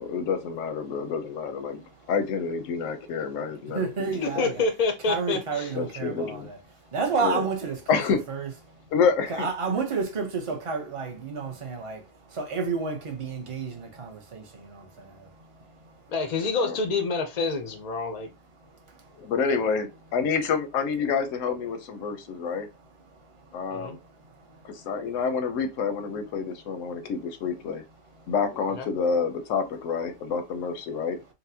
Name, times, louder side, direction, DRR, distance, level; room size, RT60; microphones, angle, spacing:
voice 1, 0.0-1.8 2.1-4.1 4.4-4.5 5.7-6.5 7.2-7.4 7.9-8.2 8.9-9.5 16.6-16.8 19.2-22.7 23.5-24.0 24.6-27.8 28.3-31.2, left 5 dB, 90° left, 1.0 m, -28 dB
voice 2, 1.7-2.1 2.7-4.6 5.1-8.0 8.3-8.9 9.3-16.1 18.2-19.3 22.0-25.2 26.1-26.6 26.8-27.1 28.0-28.3, right 5 dB, 35° right, 0.6 m, -33 dB
voice 3, 4.2-5.7 16.1-18.3 23.7-24.0 28.8-28.9, left 4 dB, 55° left, 0.4 m, -27 dB
4.0 x 2.1 x 2.7 m
omnidirectional pair, 1.3 m